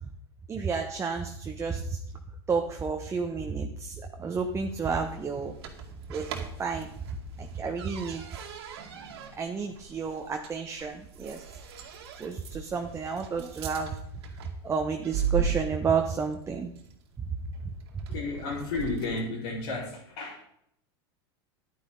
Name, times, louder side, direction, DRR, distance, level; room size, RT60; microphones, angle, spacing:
voice 1, 0.5-2.0 2.5-5.5 6.1-6.3 6.6-6.9 7.4-8.2 9.4-11.4 12.2-14.0 14.6-16.7, right 5 dB, 20° right, 3 dB, 1.2 m, -31 dB
sound 1, 4.3-19.3, right 8 dB, 80° right, 2.2 m, -39 dB
voice 2, 18.1-20.4, left 3 dB, 80° left, -9 dB, 4.8 m, -33 dB
10.5 x 10.0 x 3.9 m, 0.72 s
supercardioid pair, 110°, 13 cm